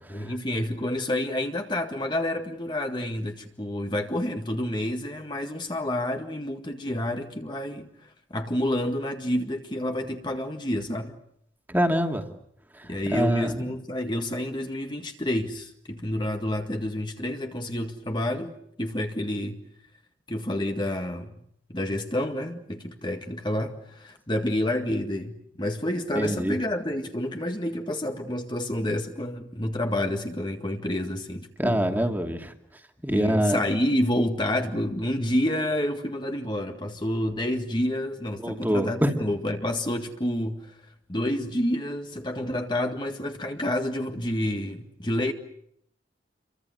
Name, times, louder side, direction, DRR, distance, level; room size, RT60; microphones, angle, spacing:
voice 1, 0.1-11.2 12.8-19.6 20.3-21.3 21.7-31.8 33.1-40.8 41.1-45.3, left 1 dB, 25° left, 1.9 m, -29 dB
voice 2, 11.7-12.2 12.7-13.6 26.1-26.6 31.6-32.5 33.0-33.6 38.4-39.2, equal, 10° right, 2.5 m, -25 dB
29.5 x 24.0 x 8.1 m
head